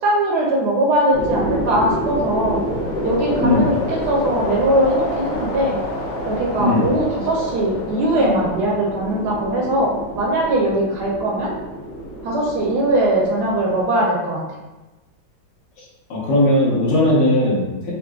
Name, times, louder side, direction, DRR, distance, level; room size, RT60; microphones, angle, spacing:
voice 1, 0.0-2.6 3.0-5.8 6.3-11.5 12.2-14.4, right 1 dB, 75° right, -3 dB, 0.9 m, -20 dB
sound 1, 1.1-13.8, equal, 70° left, 1.4 m, -28 dB
voice 2, 16.1-17.9, left 1 dB, 50° left, -6 dB, 1.0 m, -17 dB
3.9 x 2.3 x 2.3 m, 1.1 s
omnidirectional pair, 2.3 m